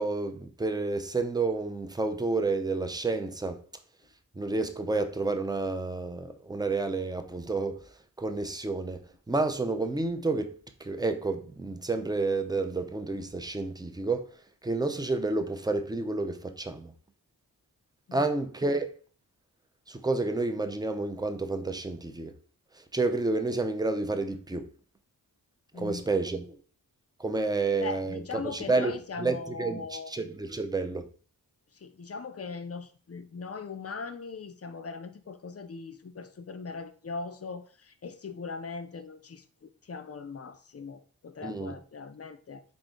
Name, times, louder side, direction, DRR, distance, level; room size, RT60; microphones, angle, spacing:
voice 1, 0.0-3.6 4.4-7.8 8.2-9.0 9.3-10.5 10.8-14.2 14.6-16.9 18.1-18.9 19.9-22.3 22.9-24.7 25.8-26.6 27.2-28.2 28.5-28.9 29.2-29.8 30.1-31.0 41.4-41.7, right 3 dB, 10° right, 0.5 m, -30 dB
voice 2, 25.7-26.1 27.8-30.1 31.7-42.6, left 4 dB, 40° left, 0.5 m, -40 dB
3.6 x 2.6 x 3.7 m
cardioid pair, 45°, 39 cm